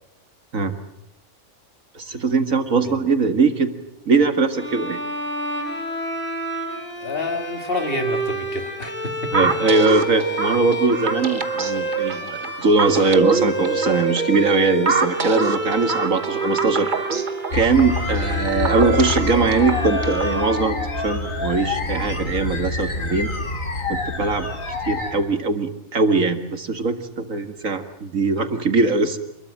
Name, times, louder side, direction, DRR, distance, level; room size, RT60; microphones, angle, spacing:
voice 1, 1.9-3.7 4.1-5.0 9.3-17.1 17.5-23.3 23.9-24.5 24.8-29.2, right 4 dB, 80° right, 7 dB, 2.4 m, -21 dB
sound 1, 4.5-21.4, right 3 dB, 10° left, 7.2 m, -29 dB
voice 2, 7.0-9.5, left 2 dB, 45° left, 5 dB, 2.5 m, -29 dB
sound 2, 9.3-20.4, right 3 dB, 40° right, 1.3 m, -26 dB
sound 3, 17.5-25.1, left 3 dB, 80° left, 3.3 m, -26 dB
27.5 x 21.5 x 7.6 m, 0.78 s
omnidirectional pair, 1.4 m